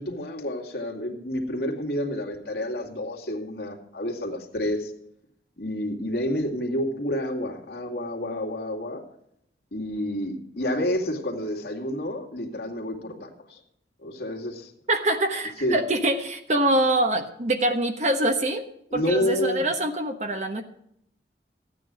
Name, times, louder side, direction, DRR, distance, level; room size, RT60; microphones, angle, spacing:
voice 1, 0.0-4.9 5.6-9.0 9.7-13.6 14.0-14.7 15.6-15.8 18.9-19.6, left 1 dB, 70° left, 1 dB, 2.3 m, -29 dB
voice 2, 14.9-18.6 18.9-20.6, right 1 dB, 40° right, 6 dB, 1.1 m, -24 dB
14.0 x 9.2 x 4.9 m, 0.73 s
head